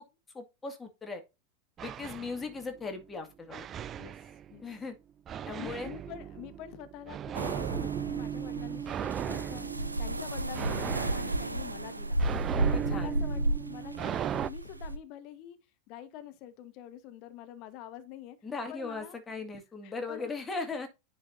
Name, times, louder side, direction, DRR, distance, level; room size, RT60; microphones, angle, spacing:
voice 1, 0.3-1.2 1.8-3.7 4.6-4.9 5.5-5.9 12.7-13.2 18.4-20.9, left 4 dB, 15° left, 2.0 m, -38 dB
sound 1, 1.8-3.0 3.5-4.7 5.3-14.5, right 9 dB, 25° right, 0.3 m, -37 dB
voice 2, 5.4-9.7 10.0-12.2 12.6-15.6 15.9-18.4 18.7-19.2 19.8-20.3, left 12 dB, 40° left, 1.2 m, -46 dB
sound 2, 7.3-15.0, right 2 dB, 80° right, 0.6 m, -33 dB
10.0 x 4.9 x 2.6 m
figure-of-eight pair, 90°, 0 cm